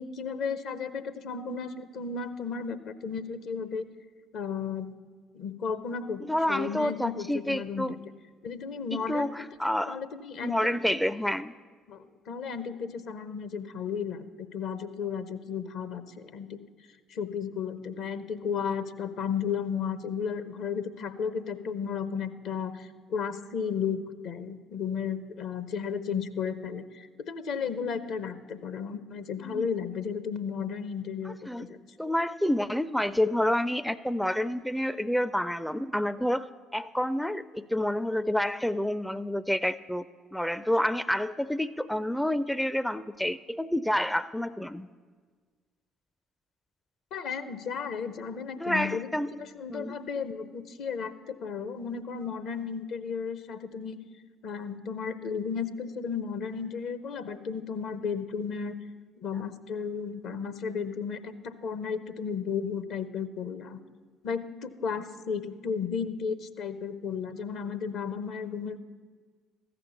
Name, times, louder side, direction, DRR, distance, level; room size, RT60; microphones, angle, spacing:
voice 1, 0.0-3.9 4.3-5.0 5.3-6.2 6.5-8.0 8.4-9.3 9.9-10.6 11.9-16.6 17.1-31.8 47.1-54.0 54.4-58.7 59.2-63.8 64.2-68.8, left 6 dB, 60° left, 13 dB, 0.7 m, -34 dB
voice 2, 6.3-8.0 9.1-10.0 10.4-11.5 29.4-29.7 31.3-31.7 32.0-40.1 40.3-44.9 48.6-49.4 49.7-50.0, left 1 dB, 5° left, 16 dB, 0.4 m, -29 dB
14.5 x 5.9 x 8.3 m, 1.5 s
figure-of-eight pair, 50°, 0 cm